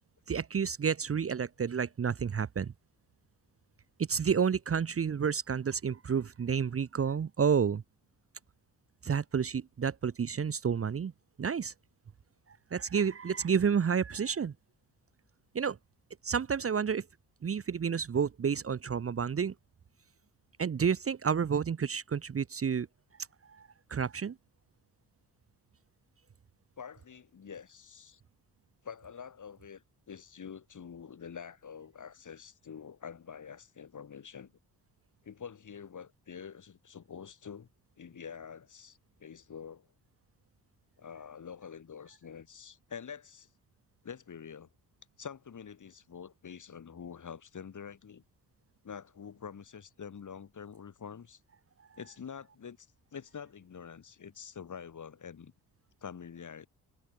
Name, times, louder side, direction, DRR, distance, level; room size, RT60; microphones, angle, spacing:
voice 1, 0.3-2.7 4.0-7.8 9.0-11.1 11.4-11.7 12.7-14.5 15.5-15.8 16.2-17.0 17.4-19.5 20.6-22.9 23.5-24.3, right 7 dB, 35° right, 1.1 m, -30 dB
voice 2, 26.8-28.2 28.8-34.5 35.2-37.7 38.0-39.9 41.0-43.5 44.0-44.7 45.2-48.2 48.8-51.4 52.0-52.9 53.1-55.5 56.0-56.7, left 7 dB, 50° left, 7.4 m, -46 dB
supercardioid pair, 70°, 38 cm